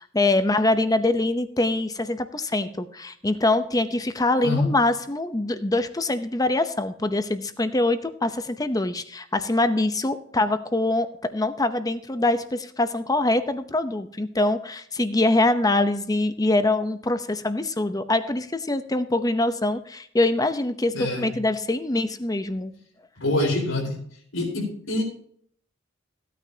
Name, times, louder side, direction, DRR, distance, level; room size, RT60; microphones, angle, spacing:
voice 1, 0.0-22.7, left 2 dB, 20° left, 10 dB, 0.8 m, -24 dB
voice 2, 20.9-21.3 23.2-24.0 24.3-25.0, left 2 dB, 85° left, 0 dB, 4.5 m, -25 dB
16.0 x 9.3 x 2.9 m, 0.63 s
head